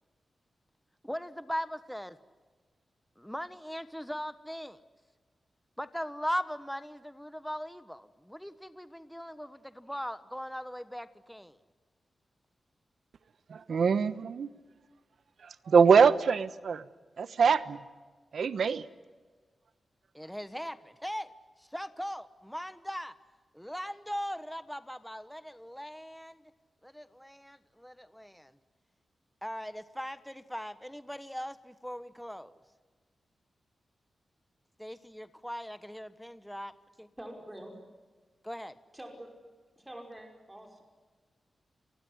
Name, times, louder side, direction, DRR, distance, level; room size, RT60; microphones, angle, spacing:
voice 1, 1.0-2.2 3.2-4.8 5.8-11.6 20.1-21.3 21.6-23.1 23.5-26.5 26.8-28.6 29.4-32.5 34.8-36.7 37.0-37.1 38.4-38.8, equal, ahead, 13 dB, 1.2 m, -39 dB
voice 2, 13.5-14.5 15.4-16.8 17.2-17.8 18.3-18.9, right 6 dB, 75° right, 14 dB, 1.1 m, -24 dB
voice 3, 37.2-37.9 38.9-39.3 39.8-40.8, right 1 dB, 15° right, 2 dB, 5.6 m, -46 dB
29.5 x 20.0 x 9.8 m, 1.4 s
wide cardioid pair, 100°, 0 cm